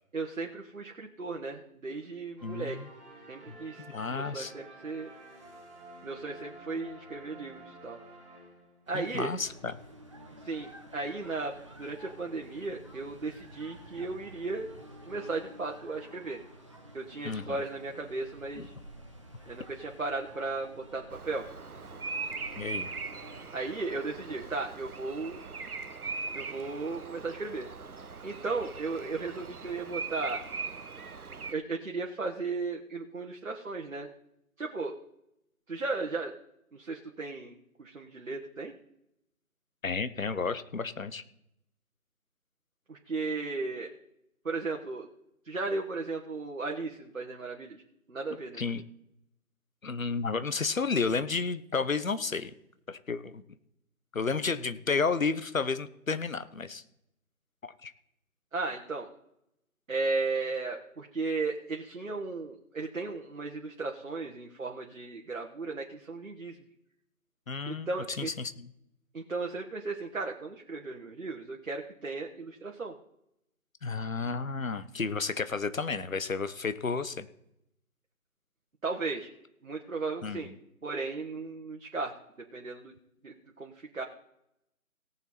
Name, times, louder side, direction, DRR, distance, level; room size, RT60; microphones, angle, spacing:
voice 1, 0.1-2.8 3.3-3.8 4.1-5.1 6.0-8.0 8.9-9.3 10.4-11.5 11.8-14.7 15.1-16.4 16.9-18.7 19.5-21.4 23.5-25.4 26.3-27.7 28.2-30.4 31.5-34.1 34.6-34.9 35.7-36.3 36.7-38.7 42.9-43.9 44.4-45.1 45.4-47.8 48.1-48.7 58.5-59.1 59.9-66.6 67.7-68.3 69.1-72.9 78.8-79.3 79.6-80.5 80.8-82.1 82.5-82.9 83.2-84.0, right 3 dB, 65° right, 1 dB, 1.4 m, -35 dB
voice 2, 2.4-2.9 3.5-4.5 8.9-9.7 17.2-17.6 18.6-18.7 22.6-22.9 39.8-41.2 48.6-48.8 49.8-52.5 52.9-53.4 54.1-56.8 57.6-57.9 67.5-68.7 73.8-77.3 80.2-80.5, left 4 dB, 65° left, 12 dB, 1.0 m, -32 dB
sound 1, 2.4-9.0, right 1 dB, ahead, 1.6 m, -51 dB
sound 2, 8.9-23.5, equal, 20° right, 0.9 m, -51 dB
Bird vocalization bird call bird song, 21.1-31.5, right 4 dB, 85° right, 0.9 m, -40 dB
18.0 x 7.0 x 4.2 m, 0.80 s
figure-of-eight pair, 155°, 43 cm